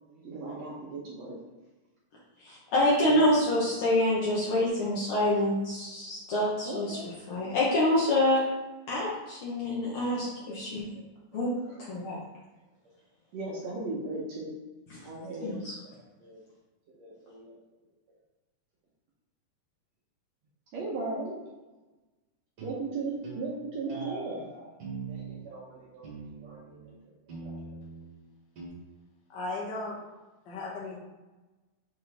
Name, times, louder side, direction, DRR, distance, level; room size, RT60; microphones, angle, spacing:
voice 1, 0.1-1.4 3.0-3.3 6.6-7.1 10.9-11.0 13.3-14.5 15.0-15.6 16.2-16.4 17.0-17.6 20.7-21.3 22.6-24.7 25.1-26.1 26.4-27.0 27.4-27.5, right 3 dB, 70° right, -4 dB, 1.7 m, -37 dB
voice 2, 2.4-8.4 8.9-10.9 11.3-11.5 11.8-12.2 14.9-15.0 15.4-15.7, left 1 dB, 65° left, -7 dB, 1.3 m, -27 dB
sound 1, 22.6-22.8 23.2-23.5 23.9-24.1 24.8-25.4 26.0-26.8 27.3-28.1 28.6-28.7, right 5 dB, 50° right, 2.2 m, -41 dB
voice 3, 29.3-30.0 30.4-31.0, left 2 dB, 50° left, -4 dB, 1.5 m, -36 dB
6.4 x 4.3 x 3.4 m, 1.1 s
omnidirectional pair, 3.8 m